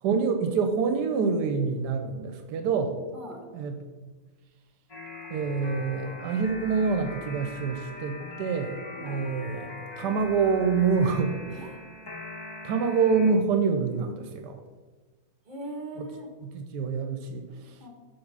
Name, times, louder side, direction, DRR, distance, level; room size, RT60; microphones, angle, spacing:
voice 1, 0.0-3.0 3.5-4.1 5.3-11.4 12.6-14.6 16.0-16.1 16.4-17.8, right 5 dB, 85° right, 7 dB, 1.2 m, -26 dB
voice 2, 3.1-3.5 8.9-9.2 11.5-11.8 15.4-16.3 17.8-17.9, right 1 dB, 30° right, 1 dB, 1.2 m, -40 dB
sound 1, 4.9-13.3, left 2 dB, 20° left, 0.7 m, -41 dB
7.1 x 3.5 x 5.4 m, 1.3 s
omnidirectional pair, 1.8 m